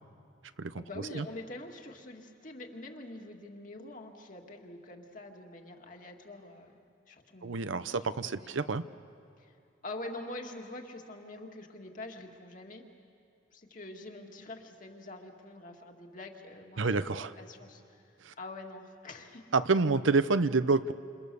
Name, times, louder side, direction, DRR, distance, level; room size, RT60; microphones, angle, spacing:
voice 1, 0.8-6.8 7.1-8.1 8.4-8.6 9.4-9.5 9.8-12.8 13.5-18.0 18.4-19.4, left 2 dB, 45° left, 2 dB, 2.1 m, -45 dB
voice 2, 7.4-8.8 16.8-17.3 18.3-18.4 19.5-20.9, right 4 dB, 85° right, 13 dB, 0.7 m, -28 dB
28.5 x 28.0 x 7.0 m, 2.5 s
head